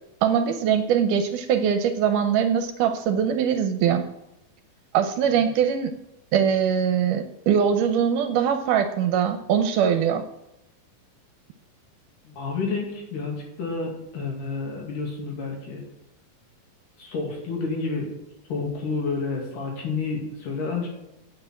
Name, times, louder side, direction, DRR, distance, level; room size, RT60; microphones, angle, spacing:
voice 1, 0.2-4.0 4.9-5.9 6.3-10.2, right 8 dB, 80° right, 7 dB, 2.1 m, -22 dB
voice 2, 12.3-15.8 17.0-18.1 18.5-20.9, left 4 dB, 65° left, -1 dB, 3.8 m, -30 dB
8.6 x 6.6 x 7.6 m, 0.89 s
omnidirectional pair, 4.0 m